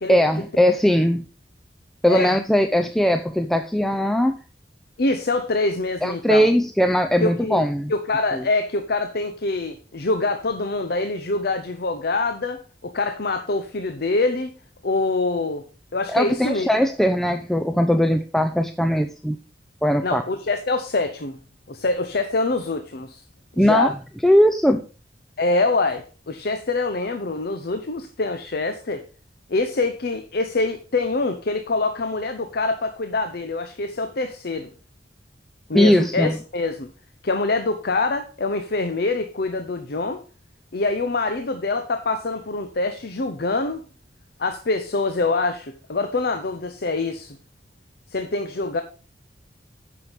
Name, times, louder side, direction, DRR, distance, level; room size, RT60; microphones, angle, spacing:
voice 1, 0.1-1.3 2.0-4.4 6.0-7.9 8.3-8.4 16.1-19.4 19.8-20.2 23.6-23.9 24.2-24.8 35.7-36.3, equal, ahead, 0.5 m, -19 dB
voice 2, 5.0-6.5 7.2-14.5 14.8-15.6 15.9-16.7 20.0-21.4 21.7-23.2 23.6-23.9 25.4-29.0 29.5-34.7 35.7-36.9 37.2-40.2 40.7-43.8 44.4-47.4 48.1-48.8, left 3 dB, 60° left, 0.8 m, -25 dB
9.0 x 6.0 x 5.2 m
head